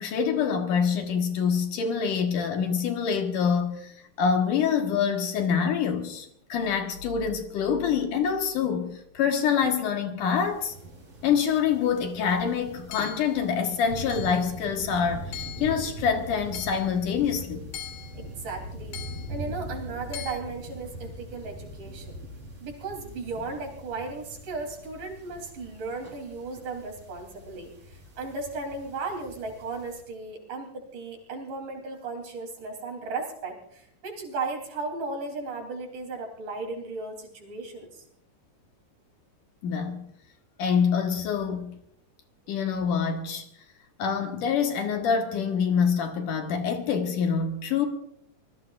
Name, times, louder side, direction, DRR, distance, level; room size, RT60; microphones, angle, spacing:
voice 1, 0.0-10.7 11.2-17.7 39.6-40.0 40.6-41.7 42.5-43.5 44.0-47.9, left 6 dB, 70° left, 2.8 m, -26 dB
sound 1, 6.5-9.2, left 10 dB, 10° left, 7.8 m, -47 dB
sound 2, 10.2-30.0, right 1 dB, 35° right, 4.7 m, -42 dB
Hammer / Chink clink, 12.9-13.4 14.1-14.5 15.3-15.8 16.5-16.9 17.7-18.2 18.9-19.3 20.1-20.4, left 12 dB, 90° left, 3.9 m, -40 dB
voice 2, 18.1-19.0 19.3-22.2 22.6-38.1, right 3 dB, 65° right, 4.8 m, -36 dB
26.0 x 21.0 x 2.5 m
omnidirectional pair, 4.0 m